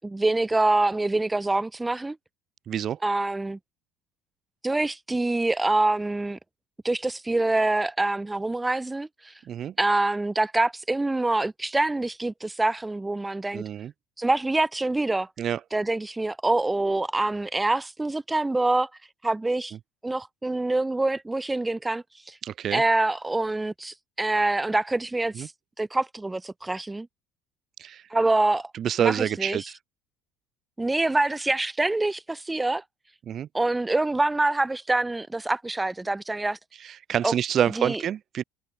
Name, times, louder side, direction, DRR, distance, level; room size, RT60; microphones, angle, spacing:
voice 1, 0.0-2.2 3.0-3.6 4.6-6.4 6.8-9.3 9.8-13.6 14.2-15.3 15.7-18.9 19.2-19.7 20.0-22.4 22.7-25.5 25.8-27.1 28.1-28.7 29.0-29.7 30.8-32.8 33.5-36.6 37.2-37.3 37.8-38.0, right 2 dB, 15° right, 6.5 m, -25 dB
voice 2, 2.7-3.0 9.5-9.7 13.5-13.9 15.4-15.6 22.4-22.8 25.4-25.5 27.8-28.0 28.7-29.7 33.3-33.5 36.8-38.4, right 9 dB, 45° right, 5.6 m, -27 dB
hypercardioid pair, 65°, 0 cm